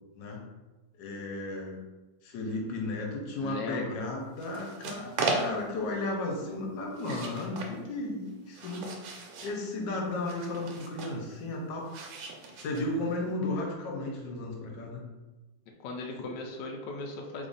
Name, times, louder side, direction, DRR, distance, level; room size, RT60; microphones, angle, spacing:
voice 1, 1.0-1.8 2.2-8.9 9.4-11.9 12.6-15.0 16.2-16.3, left 2 dB, 65° left, -1 dB, 1.2 m, -34 dB
voice 2, 3.4-4.0 15.8-17.5, left 3 dB, 85° left, 1 dB, 0.9 m, -37 dB
sound 1, 4.4-5.8 6.9-7.7 8.3-9.6 10.2-11.2 11.9-13.1, right 3 dB, 90° right, 1.5 m, -36 dB
3.4 x 2.5 x 3.8 m, 1.1 s
omnidirectional pair, 2.4 m